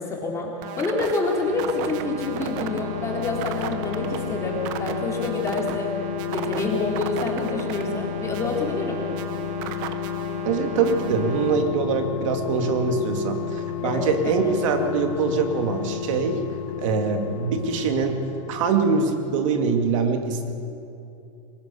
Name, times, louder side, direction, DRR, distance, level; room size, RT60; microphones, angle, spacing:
voice 1, 0.0-5.9 6.3-9.0 13.8-14.5, left 3 dB, 15° left, -1 dB, 3.7 m, -27 dB
sound 1, 0.6-11.6, right 10 dB, 45° right, 1.2 m, -35 dB
sound 2, 1.0-19.6 19.8-19.9, left 12 dB, 85° left, 0.7 m, -32 dB
voice 2, 10.4-16.4 16.8-18.2 18.5-20.5, right 5 dB, 70° right, 5 dB, 2.3 m, -23 dB
21.5 x 19.0 x 6.9 m, 2.6 s
supercardioid pair, 145°, 17 cm